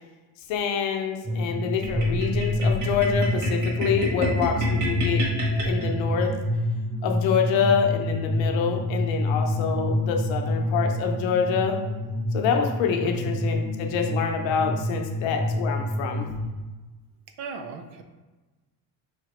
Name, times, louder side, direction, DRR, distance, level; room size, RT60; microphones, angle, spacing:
voice 1, 0.5-5.2 5.6-6.3 7.0-11.8 12.3-16.3, left 7 dB, 80° left, 3 dB, 0.8 m, -26 dB
sound 1, 1.2-16.5, left 1 dB, 15° right, 0.7 m, -27 dB
sound 2, 1.8-6.3, equal, 40° right, 1.4 m, -31 dB
voice 2, 13.0-13.4 17.4-18.0, right 5 dB, 65° right, 6 dB, 0.7 m, -37 dB
4.9 x 3.0 x 3.0 m, 1.2 s
cardioid pair, 105°, 45 cm